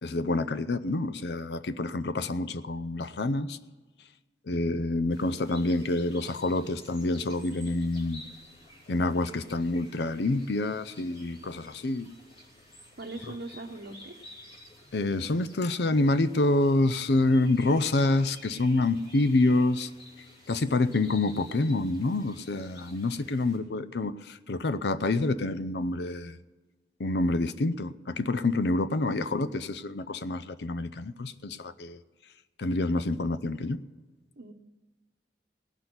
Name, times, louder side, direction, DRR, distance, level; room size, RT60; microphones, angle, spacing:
voice 1, 0.0-3.6 4.5-8.2 8.9-12.1 14.9-19.9 20.5-26.4 27.0-32.0 32.6-33.8, left 2 dB, 65° left, 0.6 m, -27 dB
sound 1, 5.1-23.6, left 1 dB, 30° left, 2.8 m, -52 dB
voice 2, 13.0-14.3 34.4-34.5, right 2 dB, 65° right, 0.9 m, -40 dB
17.5 x 6.1 x 9.7 m
head